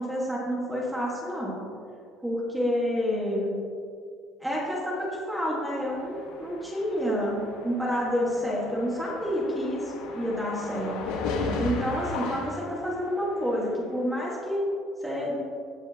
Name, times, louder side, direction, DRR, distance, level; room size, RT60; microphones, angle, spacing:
voice 1, 0.0-1.6 2.2-3.5 4.4-10.9 11.6-14.6 15.0-15.4, equal, 5° right, -5 dB, 1.5 m, -29 dB
sound 1, 5.8-13.4, left 3 dB, 85° left, 1.3 m, -36 dB
15.0 x 6.3 x 2.8 m, 2.3 s
cardioid pair, 160°, 0 cm